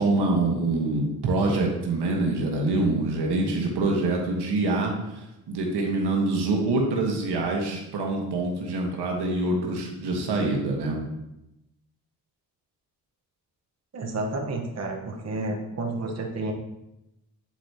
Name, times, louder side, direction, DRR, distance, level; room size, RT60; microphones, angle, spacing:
voice 1, 0.0-11.0, right 2 dB, 75° right, 0 dB, 1.4 m, -25 dB
voice 2, 13.9-16.5, right 2 dB, 40° right, 1 dB, 1.1 m, -30 dB
8.8 x 4.4 x 2.8 m, 0.90 s
supercardioid pair, 60°, 41 cm